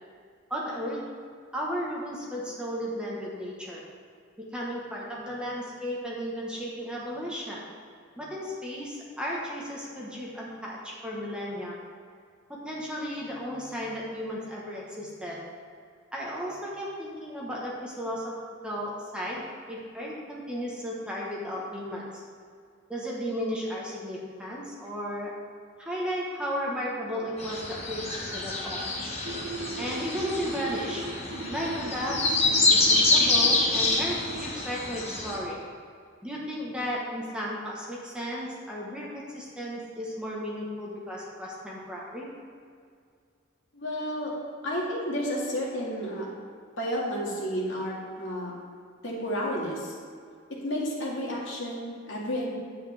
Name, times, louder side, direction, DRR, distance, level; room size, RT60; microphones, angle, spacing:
voice 1, 0.5-1.1 1.5-3.8 4.5-7.6 8.2-11.8 12.6-15.4 16.1-18.4 18.6-22.2 22.9-25.3 25.8-28.9 29.8-31.0 31.5-35.6 36.2-42.3, equal, 5° right, -5 dB, 1.2 m, -34 dB
sound 1, 27.4-35.4, left 3 dB, 30° left, 1.3 m, -26 dB
sound 2, 29.2-34.5, right 2 dB, 70° right, 0.9 m, -38 dB
voice 2, 43.7-44.3 44.6-46.3 46.8-48.5 49.0-49.9 50.5-52.5, equal, 65° left, -4 dB, 2.1 m, -31 dB
9.8 x 8.3 x 3.5 m, 2.2 s
head